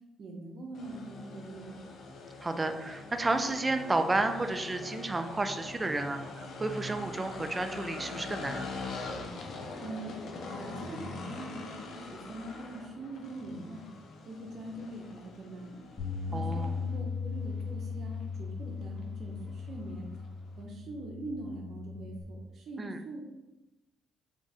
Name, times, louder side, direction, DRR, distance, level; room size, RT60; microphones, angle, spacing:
voice 1, 0.2-1.8 9.8-10.2 10.5-13.8 14.3-15.8 16.3-20.1 20.6-23.2, right 2 dB, 65° right, 0 dB, 0.7 m, -43 dB
sound 1, 0.7-20.6, left 3 dB, 70° left, 0.5 m, -44 dB
voice 2, 2.4-8.7 16.3-16.7 22.8-23.0, right 2 dB, 20° right, 7 dB, 0.4 m, -31 dB
Bass guitar, 16.0-22.2, left 5 dB, 45° left, 1.1 m, -38 dB
3.6 x 2.4 x 4.0 m, 1.0 s
cardioid pair, 90°, 0 cm